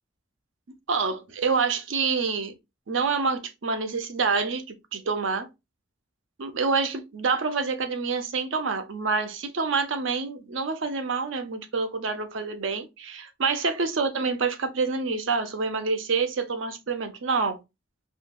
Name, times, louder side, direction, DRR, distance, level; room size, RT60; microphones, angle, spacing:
voice 1, 0.9-2.5 2.9-4.6 4.9-5.5 6.4-17.6, right 4 dB, 70° right, 0.6 m, -27 dB
3.8 x 2.8 x 2.3 m
head